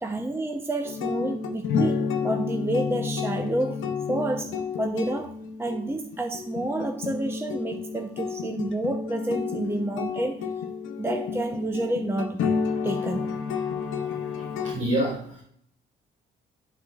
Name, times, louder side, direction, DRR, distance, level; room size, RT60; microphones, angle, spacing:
voice 1, 0.0-10.4 11.0-12.5 12.8-13.3, right 2 dB, 10° right, 4 dB, 0.7 m, -30 dB
sound 1, 0.8-14.7, left 5 dB, 80° left, 0.9 m, -30 dB
voice 2, 14.6-15.4, right 1 dB, 80° right, -6 dB, 2.5 m, -27 dB
11.5 x 4.2 x 2.3 m, 0.65 s
cardioid pair, 90°, 20 cm